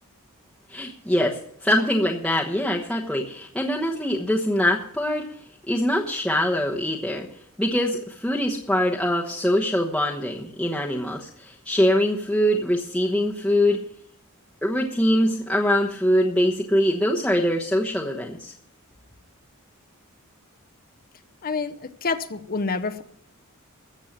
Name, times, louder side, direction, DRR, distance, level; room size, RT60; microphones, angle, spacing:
voice 1, 0.7-5.3 5.7-7.3 7.6-13.8 14.6-18.5, equal, 5° left, -3 dB, 1.0 m, -23 dB
voice 2, 21.4-23.0, left 4 dB, 40° left, 10 dB, 0.8 m, -28 dB
14.0 x 7.3 x 7.3 m, 0.69 s
head